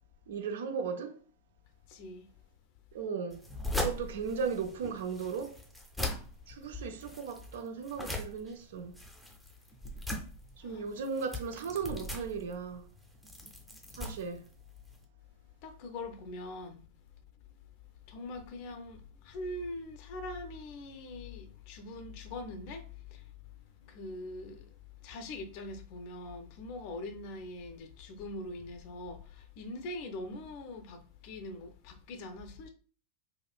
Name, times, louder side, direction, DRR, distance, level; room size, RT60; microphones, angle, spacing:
voice 1, 0.3-1.2 2.9-3.4 3.7-5.6 6.5-8.9 10.6-12.8 14.0-14.4, right 5 dB, 60° right, 0.4 m, -36 dB
voice 2, 1.9-2.3 10.6-10.8 15.6-16.8 18.1-23.2 23.8-24.7 25.0-32.7, left 2 dB, 45° left, 0.5 m, -42 dB
sound 1, 3.3-15.0, left 1 dB, ahead, 0.6 m, -40 dB
4.1 x 2.4 x 2.2 m
figure-of-eight pair, 90°, 0 cm